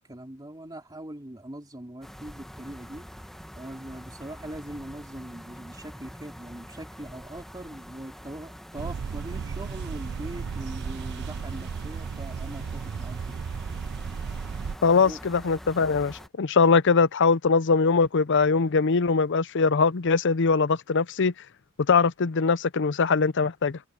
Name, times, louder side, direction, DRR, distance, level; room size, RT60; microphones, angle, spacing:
voice 1, 0.1-3.1 3.6-13.4 15.0-15.2, right 1 dB, 20° right, 3.6 m, -41 dB
sound 1, 2.0-16.3, equal, ahead, 1.2 m, -45 dB
sound 2, 8.8-14.8, right 6 dB, 55° right, 0.3 m, -34 dB
voice 2, 14.8-21.3 21.9-23.8, left 4 dB, 60° left, 0.6 m, -22 dB
head